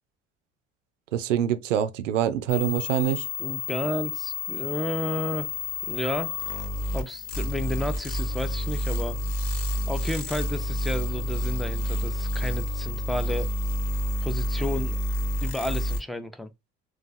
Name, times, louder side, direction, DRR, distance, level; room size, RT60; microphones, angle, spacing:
voice 1, 1.1-3.3, right 10 dB, 85° right, 0.5 m, -25 dB
sound 1, 2.5-16.0, left 1 dB, 55° left, 1.1 m, -29 dB
voice 2, 3.4-5.5 5.9-6.4 6.9-9.2 9.5-9.6 9.9-13.5 14.2-15.0 15.4-16.5, left 1 dB, ahead, 0.4 m, -32 dB
3.8 x 2.3 x 2.5 m
hypercardioid pair, 60°, 37 cm